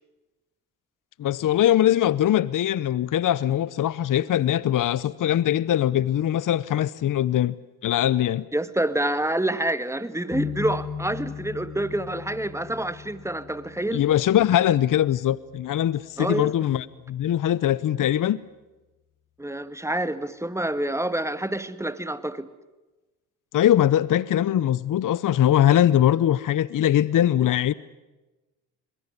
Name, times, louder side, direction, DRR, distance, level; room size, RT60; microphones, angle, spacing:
voice 1, 1.2-7.6 7.8-8.5 13.9-18.4 23.5-27.7, left 11 dB, 50° left, 0.8 m, -21 dB
voice 2, 8.5-14.0 16.2-16.5 19.4-22.5, right 1 dB, 5° right, 1.8 m, -27 dB
sound 1, 10.3-16.1, left 7 dB, 35° left, 2.0 m, -38 dB
22.5 x 21.0 x 9.7 m
supercardioid pair, 60°, 40 cm